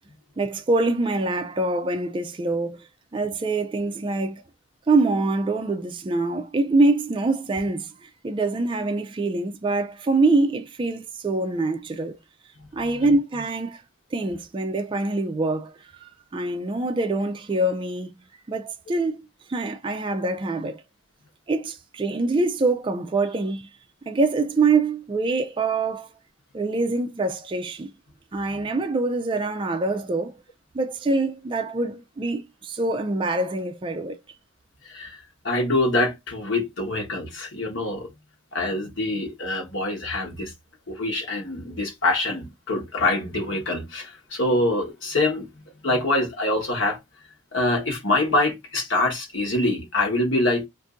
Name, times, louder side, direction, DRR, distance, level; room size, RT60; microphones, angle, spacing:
voice 1, 0.4-2.9 3.1-4.4 4.9-12.2 12.7-13.8 14.1-18.1 18.5-20.8 21.5-23.7 24.1-26.1 26.5-27.9 28.3-30.4 30.7-34.2, right 3 dB, 25° right, 0.4 m, -25 dB
voice 2, 12.6-13.1 28.5-28.6 34.8-38.1 38.5-40.5 40.9-45.5 45.8-47.0 47.5-50.7, left 2 dB, 60° left, 1.2 m, -25 dB
2.6 x 2.6 x 3.6 m
head